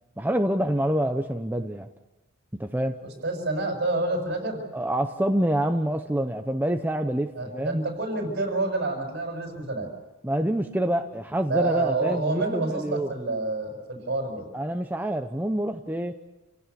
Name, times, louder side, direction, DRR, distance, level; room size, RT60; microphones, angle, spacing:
voice 1, 0.2-1.9 2.5-3.0 4.7-7.8 10.2-13.1 14.5-16.1, right 1 dB, 10° right, 5 dB, 0.8 m, -26 dB
voice 2, 3.2-4.6 7.4-9.9 11.5-14.4, right 2 dB, 55° right, 3 dB, 6.4 m, -28 dB
28.5 x 17.5 x 7.0 m, 1.0 s
head